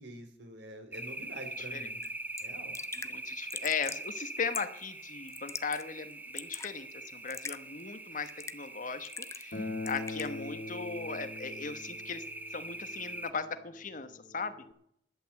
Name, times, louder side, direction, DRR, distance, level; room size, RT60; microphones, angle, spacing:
voice 1, 0.0-2.0 2.4-2.8 9.6-10.0, right 1 dB, 80° right, 5 dB, 3.0 m, -47 dB
sound 1, 0.9-13.3, right 2 dB, 10° right, 0.8 m, -43 dB
voice 2, 1.6-1.9 3.0-9.6 9.8-12.2 12.5-14.6, left 5 dB, 50° left, 10 dB, 1.1 m, -38 dB
Raindrop / Drip, 2.0-2.1 2.4-2.5 2.7-3.1 3.5-4.1 4.5-4.8 5.3-5.8 6.1-6.7 7.3-7.6 8.3-8.7 9.1-9.6 9.9-10.3, left 5 dB, 15° left, 0.5 m, -41 dB
Acoustic guitar, 9.5-14.7, left 3 dB, 80° left, 2.2 m, -43 dB
11.5 x 8.7 x 8.1 m, 0.71 s
head